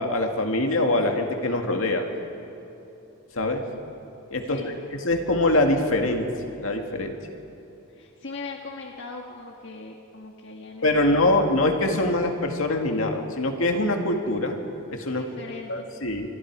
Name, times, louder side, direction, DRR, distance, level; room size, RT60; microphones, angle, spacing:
voice 1, 0.0-2.1 3.3-3.6 4.3-4.6 4.9-7.2 10.8-14.6 14.9-15.2 15.7-16.3, left 2 dB, 80° left, 3 dB, 2.2 m, -24 dB
voice 2, 4.4-4.7 7.9-11.5 15.1-15.9, left 3 dB, 60° left, 1 dB, 1.6 m, -40 dB
27.0 x 23.5 x 4.8 m, 2.9 s
head